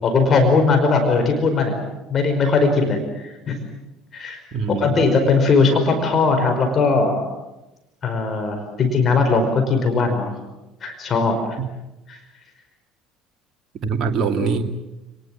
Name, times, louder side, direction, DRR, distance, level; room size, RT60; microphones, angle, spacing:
voice 1, 0.0-1.8 2.1-3.6 4.1-4.4 4.7-7.2 8.0-10.3 10.8-11.6 12.1-12.2, left 4 dB, 40° left, 5 dB, 5.1 m, -19 dB
voice 2, 4.5-4.9 11.6-11.7 13.8-14.6, right 5 dB, 45° right, 4 dB, 2.7 m, -23 dB
30.0 x 20.0 x 7.7 m, 0.99 s
hypercardioid pair, 65°, 0 cm